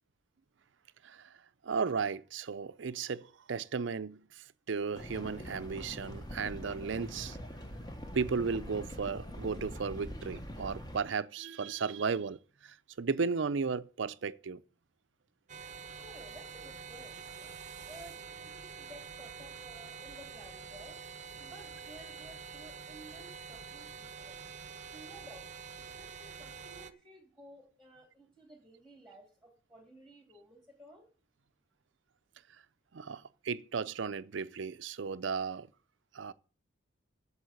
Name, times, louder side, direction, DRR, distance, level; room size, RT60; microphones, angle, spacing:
voice 1, 1.6-7.4 8.1-14.6 32.9-35.7 36.1-36.3, right 5 dB, 65° right, 0.5 m, -35 dB
sound 1, 4.9-11.0, equal, 20° left, 1.2 m, -43 dB
sound 2, 15.5-26.9, right 6 dB, 35° right, 0.7 m, -47 dB
voice 2, 16.0-17.5 17.9-21.0 21.4-24.4 24.9-25.5 25.9-31.1, right 1 dB, 5° left, 2.7 m, -55 dB
8.5 x 7.2 x 8.0 m
head